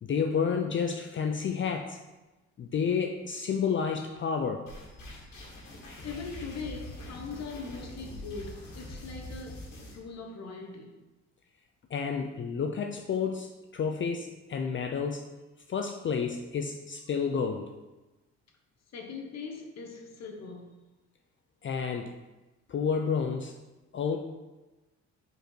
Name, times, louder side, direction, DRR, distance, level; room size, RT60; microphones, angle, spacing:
voice 1, 0.0-2.0 2.6-4.7 11.9-15.2 15.7-17.7 21.6-22.2 22.7-23.5 23.9-24.2, left 6 dB, 40° left, 0.5 m, -30 dB
sound 1, 4.7-10.0, left 1 dB, 85° left, 1.8 m, -44 dB
voice 2, 6.0-11.0 18.9-20.8, left 4 dB, 60° left, 1.1 m, -41 dB
5.1 x 4.6 x 4.6 m
cardioid pair, 90°, 30 cm